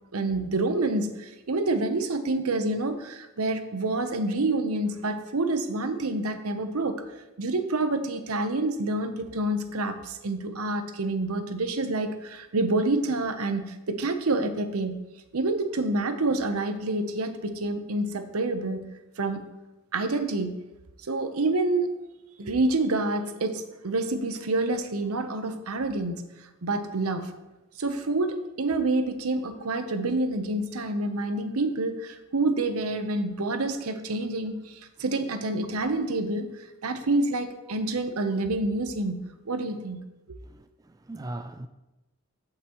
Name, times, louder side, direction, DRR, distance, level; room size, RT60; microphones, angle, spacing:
voice 1, 0.1-7.0 7.4-14.9 15.3-18.9 19.2-19.4 19.9-20.6 21.0-21.9 22.4-26.2 26.6-27.4 27.8-36.5 36.8-40.0, right 2 dB, 90° right, 0.8 m, -27 dB
voice 2, 40.5-41.7, right 1 dB, 15° right, 0.3 m, -39 dB
14.5 x 5.9 x 3.0 m
head